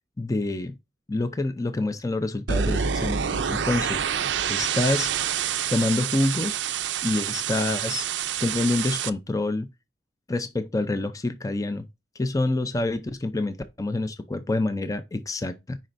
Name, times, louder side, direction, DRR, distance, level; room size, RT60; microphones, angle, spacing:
voice 1, 0.2-0.7 1.1-4.0 4.5-5.1 5.7-6.6 7.0-8.1 8.4-9.7 10.3-11.9 12.2-15.8, left 2 dB, 20° left, 0.5 m, -27 dB
sound 1, 2.5-9.1, right 8 dB, 85° right, 0.5 m, -27 dB
7.3 x 5.3 x 2.6 m
head